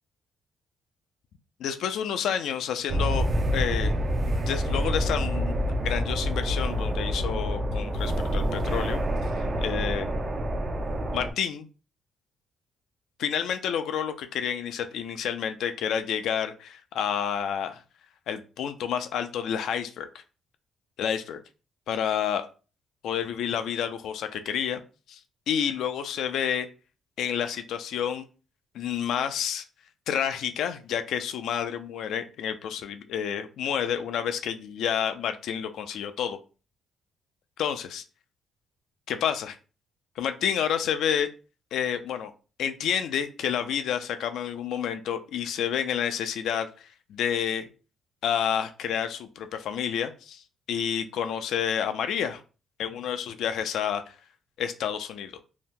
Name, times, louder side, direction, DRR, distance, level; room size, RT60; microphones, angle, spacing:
voice 1, 1.6-3.9 4.3-5.5 5.8-9.0 9.4-10.1 11.1-11.7 13.2-17.8 18.3-20.1 21.0-21.4 21.9-22.5 23.0-24.8 25.1-25.2 25.5-26.7 27.2-28.3 28.7-29.6 30.1-36.4 37.6-38.0 39.1-39.6 40.2-41.3 41.7-42.3 42.6-47.7 48.2-50.4 50.7-52.4 52.8-54.0 54.6-55.4, left 8 dB, 80° left, 8 dB, 0.4 m, -29 dB
sound 1, 2.9-11.3, equal, 40° right, 0.5 m, -27 dB
2.7 x 2.1 x 3.5 m, 0.34 s
cardioid pair, 90°, 0 cm